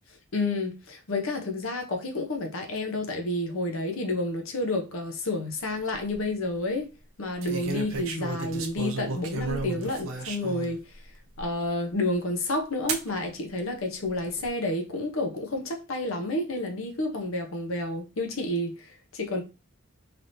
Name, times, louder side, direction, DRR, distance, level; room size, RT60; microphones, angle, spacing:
voice 1, 0.3-6.9 7.2-10.9 11.4-19.4, left 2 dB, 70° left, 0.7 m, -30 dB
sound 1, 5.7-6.2 7.4-10.7 11.4-11.5 12.9-13.1 14.0-14.5, right 3 dB, 70° right, 0.6 m, -33 dB
3.3 x 2.9 x 2.6 m
head